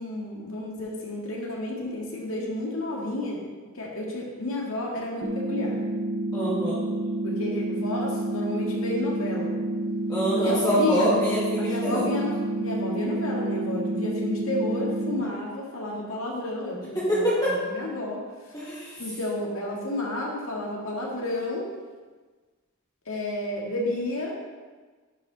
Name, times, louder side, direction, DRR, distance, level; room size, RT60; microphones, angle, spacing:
voice 1, 0.0-3.4 3.7-5.8 7.2-9.5 10.4-11.2 11.6-18.2 19.0-21.7 23.1-24.4, left 1 dB, 70° left, -3 dB, 1.9 m, -31 dB
sound 1, 5.2-15.2, right 1 dB, 20° right, 0.8 m, -29 dB
voice 2, 6.3-6.8 10.1-12.0 16.9-17.5 18.5-18.9, equal, 15° left, -9 dB, 2.0 m, -25 dB
11.0 x 5.1 x 4.0 m, 1.4 s
head